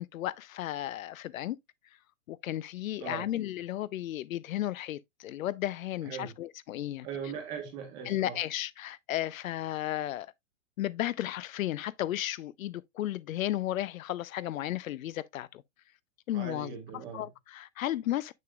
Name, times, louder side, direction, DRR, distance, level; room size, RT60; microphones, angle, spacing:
voice 1, 0.0-1.6 2.3-7.1 8.1-10.3 10.8-15.6 16.3-16.8 17.1-18.3, left 13 dB, 80° left, 0.6 m, -34 dB
voice 2, 3.0-3.3 6.0-6.3 7.0-8.4 16.3-17.3, right 6 dB, 10° right, 0.4 m, -40 dB
6.9 x 6.5 x 2.3 m
hypercardioid pair, 160°, 40 cm